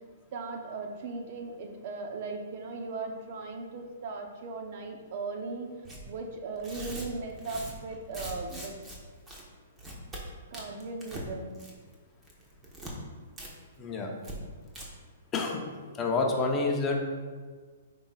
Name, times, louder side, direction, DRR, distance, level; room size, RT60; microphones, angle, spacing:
voice 1, 0.3-5.7 6.0-8.7 10.5-11.6, right 3 dB, 50° right, 3 dB, 0.9 m, -38 dB
Tearing, 5.8-6.0 6.5-9.0 9.3-9.4 9.8-10.2 10.5-11.3 11.5-11.9 12.2-12.9 13.4-13.5 13.8-13.9 14.2-14.3 14.7-14.8, right 1 dB, 10° right, 1.3 m, -42 dB
voice 2, 13.8-14.1 15.3-15.7 15.9-17.0, left 3 dB, 20° left, 0 dB, 1.0 m, -28 dB
8.9 x 5.2 x 2.5 m, 1.5 s
hypercardioid pair, 135°, 0 cm